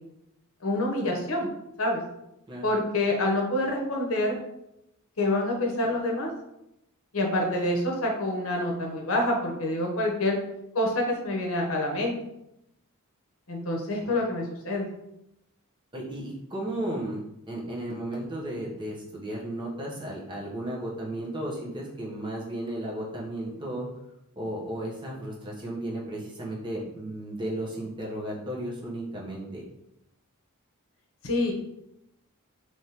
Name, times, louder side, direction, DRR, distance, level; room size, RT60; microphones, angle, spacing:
voice 1, 0.6-1.5 1.8-2.0 2.6-4.4 5.2-6.3 7.1-10.4 10.7-12.2 13.5-14.9 31.2-31.5, left 1 dB, 65° left, 0 dB, 0.8 m, -27 dB
voice 2, 15.9-17.2 17.5-23.9 24.4-29.6, right 1 dB, 20° right, -4 dB, 0.8 m, -34 dB
3.5 x 3.1 x 2.8 m, 0.85 s
head